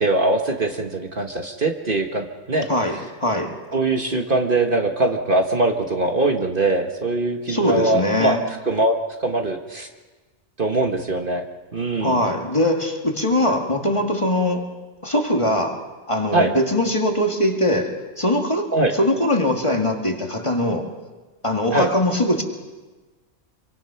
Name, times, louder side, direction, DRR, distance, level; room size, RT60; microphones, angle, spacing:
voice 1, 0.0-2.7 3.7-8.4 8.6-9.9 10.6-11.4 11.7-12.2 16.3-16.5 18.7-18.9 21.7-21.9, right 2 dB, 45° right, 4 dB, 1.5 m, -22 dB
voice 2, 2.7-3.5 7.5-8.4 12.0-14.7 15.0-15.8 16.1-18.7 19.0-20.9 21.4-22.4, left 1 dB, 25° left, 2 dB, 2.1 m, -21 dB
26.0 x 24.5 x 5.8 m, 1.3 s
omnidirectional pair, 1.3 m